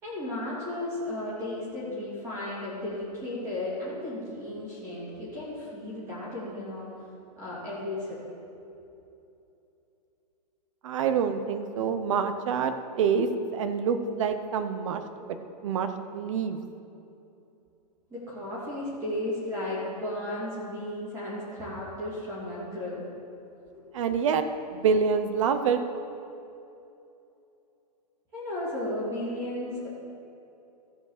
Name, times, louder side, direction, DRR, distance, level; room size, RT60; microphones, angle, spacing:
voice 1, 0.0-6.9 7.4-8.2 18.1-23.1 23.7-23.9 28.3-29.9, left 1 dB, 15° right, -8 dB, 2.7 m, -34 dB
voice 2, 10.8-15.0 15.3-16.6 23.9-24.5 24.7-25.8, right 6 dB, 50° right, 9 dB, 0.7 m, -27 dB
14.5 x 5.0 x 6.6 m, 2.8 s
supercardioid pair, 170°, 21 cm